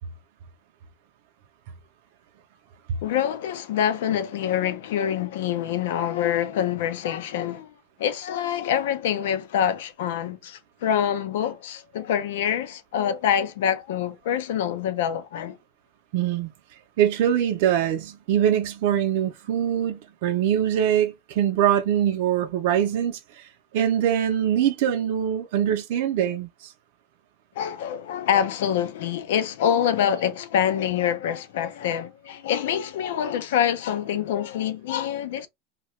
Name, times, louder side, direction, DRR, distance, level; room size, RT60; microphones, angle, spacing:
voice 1, 3.0-7.7 8.0-15.6 27.6-35.5, left 9 dB, 90° left, 0.5 m, -26 dB
voice 2, 16.1-16.5 17.0-23.5 23.7-26.7, right 10 dB, 65° right, 0.5 m, -23 dB
2.8 x 2.2 x 3.1 m
supercardioid pair, 165°, 0 cm